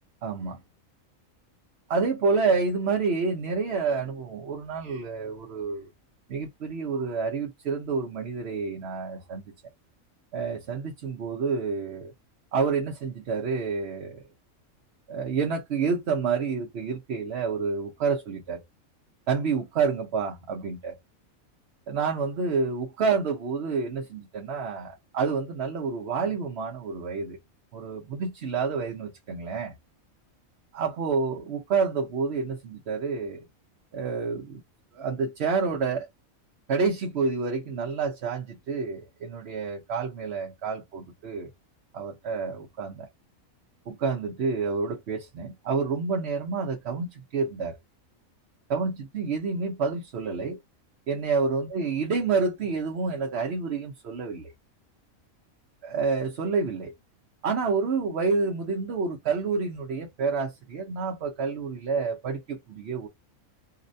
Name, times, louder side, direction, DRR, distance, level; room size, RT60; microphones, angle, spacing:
voice 1, 0.2-0.6 1.9-5.9 6.3-9.4 10.3-12.1 12.5-14.2 15.1-18.6 19.3-21.0 21.9-27.4 27.7-29.7 30.7-33.4 33.9-34.6 34.9-36.1 36.7-41.5 41.9-43.1 43.9-47.8 48.7-50.6 51.1-54.5 55.8-56.9 57.4-63.1, right 5 dB, 60° right, 0.8 m, -28 dB
4.6 x 2.1 x 2.5 m
omnidirectional pair, 1.4 m